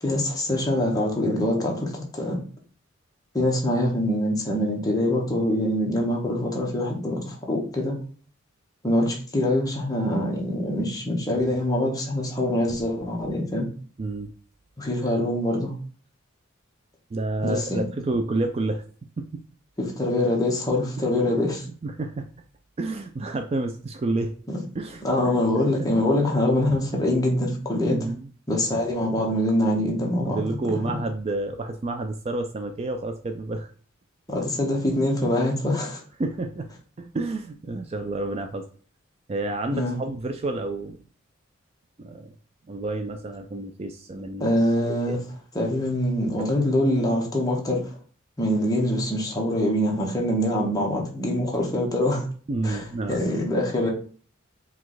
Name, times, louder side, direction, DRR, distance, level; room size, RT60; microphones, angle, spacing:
voice 1, 0.0-2.4 3.3-7.9 8.8-13.7 14.8-15.7 17.4-17.8 19.8-21.6 24.5-24.6 25.0-28.0 28.5-30.4 30.7-30.8 34.3-36.0 39.7-40.0 44.4-45.2 45.5-48.0 48.4-52.3 52.6-53.9, left 1 dB, 20° left, -1 dB, 1.0 m, -24 dB
voice 2, 14.0-14.3 17.1-18.8 19.2-19.4 21.0-21.1 21.8-22.3 22.8-24.3 24.7-25.4 27.9-28.3 30.2-33.7 36.2-36.7 37.0-38.7 39.3-41.0 42.0-42.3 42.7-44.5 45.1-45.2 46.2-46.7 52.5-53.2, right 2 dB, 30° right, 6 dB, 0.3 m, -29 dB
4.7 x 2.4 x 3.9 m, 0.42 s
head